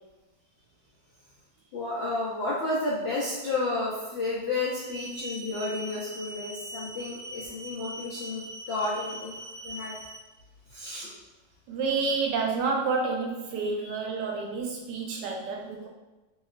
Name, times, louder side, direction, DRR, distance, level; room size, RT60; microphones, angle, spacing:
voice 1, 1.7-9.3 9.6-10.0 10.7-11.1 13.8-13.9, left 2 dB, 85° left, -8 dB, 0.5 m, -31 dB
sound 1, 4.7-10.2, right 1 dB, 30° right, 0.9 m, -41 dB
voice 2, 11.7-15.9, right 4 dB, 75° right, 0 dB, 1.2 m, -29 dB
3.0 x 2.9 x 2.4 m, 1.1 s
omnidirectional pair, 2.0 m